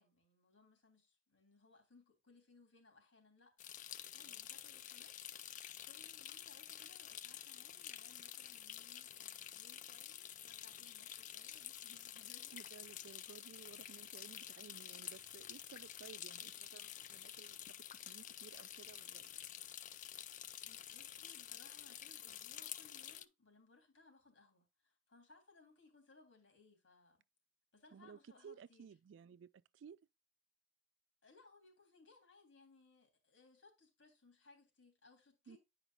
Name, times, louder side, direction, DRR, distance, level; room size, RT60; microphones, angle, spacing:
voice 1, 0.0-5.6 5.8-12.6 20.6-27.2 27.7-28.9 31.2-35.6, left 3 dB, 90° left, 3.2 m, -66 dB
sound 1, 3.6-23.2, left 11 dB, 40° left, 0.4 m, -50 dB
voice 2, 12.5-19.3 27.9-30.0 35.5-35.6, right 7 dB, 80° right, 0.3 m, -57 dB
9.8 x 5.0 x 2.8 m
head